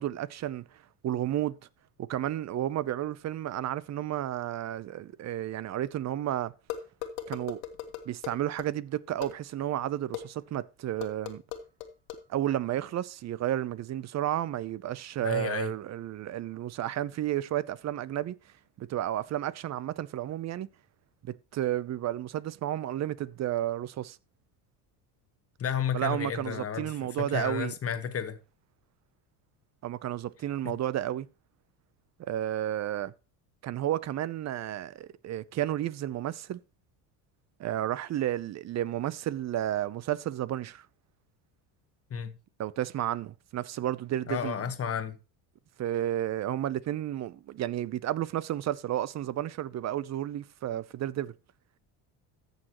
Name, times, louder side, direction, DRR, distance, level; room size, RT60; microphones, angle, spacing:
voice 1, 0.0-1.6 2.0-6.5 7.3-7.6 8.1-11.4 12.3-18.4 18.8-20.7 21.5-24.2 25.9-27.7 29.8-31.3 32.2-33.1 33.6-36.6 37.6-40.9 42.6-44.7 45.8-51.3, right 12 dB, 40° right, 0.6 m, -32 dB
sound 1, 6.7-8.7 9.2-9.3 10.1-10.2 11.0-12.2, left 10 dB, 85° left, 1.6 m, -37 dB
voice 2, 15.2-15.7 25.6-28.4 30.6-30.8 42.1-42.4 44.3-45.2, left 7 dB, 35° left, 1.2 m, -32 dB
14.0 x 6.5 x 3.0 m
supercardioid pair, 105°, 42 cm